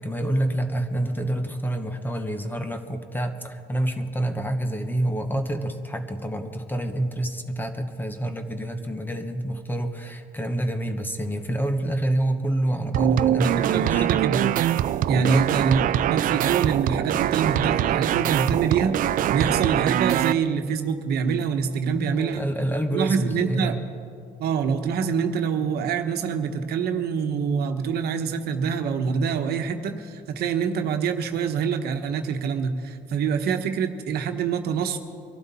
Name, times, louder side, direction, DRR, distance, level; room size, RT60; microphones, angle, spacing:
voice 1, 0.0-14.1 15.1-15.5 21.9-23.8, right 1 dB, 10° left, 7 dB, 1.2 m, -27 dB
sound 1, 12.9-20.3, right 12 dB, 55° right, 0.4 m, -23 dB
voice 2, 13.4-14.5 15.1-22.4 22.9-23.8 24.4-35.0, right 6 dB, 70° right, 6 dB, 1.2 m, -25 dB
23.5 x 12.0 x 4.2 m, 2.3 s
cardioid pair, 110°, 17 cm